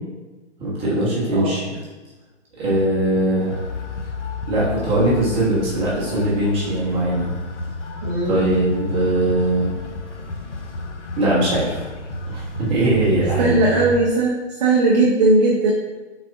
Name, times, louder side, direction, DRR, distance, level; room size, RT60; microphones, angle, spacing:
voice 1, 0.6-1.6 2.6-3.6 4.5-7.3 8.2-9.7 11.2-11.8 12.3-13.6, right 1 dB, 15° right, -7 dB, 1.1 m, -20 dB
sound 1, 3.4-14.0, equal, 75° left, 0.7 m, -31 dB
voice 2, 8.0-8.5 13.4-15.7, right 2 dB, 35° right, -3 dB, 0.6 m, -18 dB
4.6 x 4.0 x 2.5 m, 1.2 s
figure-of-eight pair, 135°, 36 cm